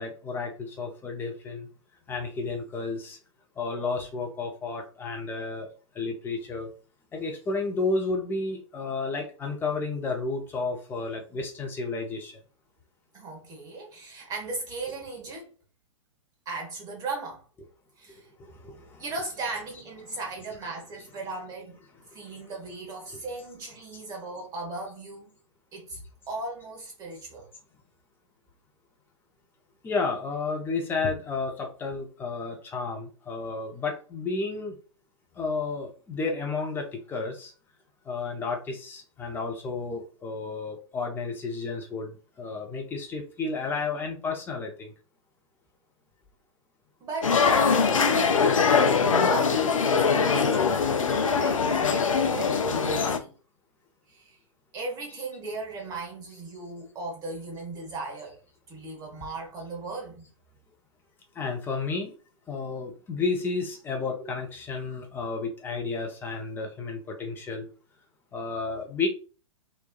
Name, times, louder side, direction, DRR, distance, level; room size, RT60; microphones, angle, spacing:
voice 1, 0.0-1.7 2.1-3.2 3.6-5.7 6.0-6.7 7.1-12.3 18.6-18.8 20.6-20.7 29.8-34.7 35.4-37.5 38.1-44.9 61.4-62.1 62.5-67.7 68.3-69.1, left 4 dB, 10° left, 0.6 m, -32 dB
voice 2, 13.1-15.5 16.5-17.4 18.0-18.3 19.0-21.8 22.1-25.3 25.7-27.5 47.0-47.4 47.7-48.4 49.3-53.3 54.1-54.4 54.7-58.4 58.7-60.3, right 3 dB, 20° right, 1.0 m, -37 dB
sound 1, 47.2-53.2, left 5 dB, 75° left, 0.5 m, -22 dB
3.0 x 2.2 x 2.2 m
figure-of-eight pair, 110°, 17 cm